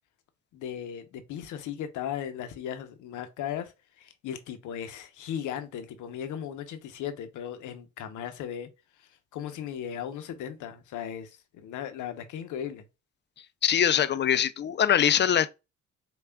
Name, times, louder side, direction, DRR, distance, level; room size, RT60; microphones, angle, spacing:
voice 1, 0.5-3.7 4.0-8.7 9.3-12.9, left 9 dB, 80° left, 0.8 m, -37 dB
voice 2, 13.6-15.5, left 9 dB, 35° left, 0.4 m, -23 dB
5.6 x 2.4 x 2.2 m
cardioid pair, 90°, 30 cm